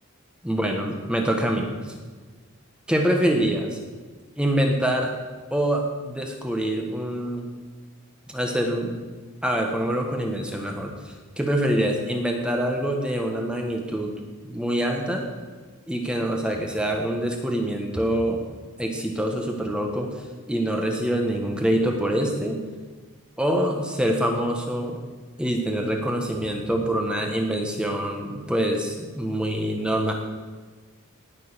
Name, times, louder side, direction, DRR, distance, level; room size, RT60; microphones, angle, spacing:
voice 1, 0.4-1.9 2.9-3.8 4.4-5.1 5.5-7.4 8.3-9.0 9.4-10.9 11.4-14.1 14.4-15.2 15.9-18.4 18.8-20.1 20.5-22.6 23.4-25.0 25.4-30.1, right 1 dB, 5° right, 2 dB, 1.5 m, -25 dB
19.0 x 6.8 x 6.8 m, 1.4 s
head